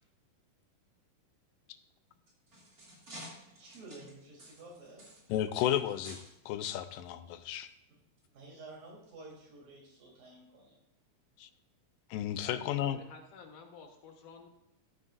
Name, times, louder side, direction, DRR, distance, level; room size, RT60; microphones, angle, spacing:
sound 1, 2.1-6.3 6.6-6.8 7.6-7.7 8.2-8.3, equal, 30° right, 2.7 m, -51 dB
voice 1, 3.6-5.1 8.3-10.8, right 2 dB, 85° right, -4 dB, 5.3 m, -51 dB
voice 2, 5.3-6.2 6.5-7.7 11.4-11.5 12.1-13.0, left 11 dB, 85° left, 11 dB, 2.4 m, -33 dB
voice 3, 12.4-14.5, left 4 dB, 70° left, 3 dB, 2.7 m, -51 dB
14.0 x 9.2 x 2.6 m, 0.86 s
omnidirectional pair, 3.8 m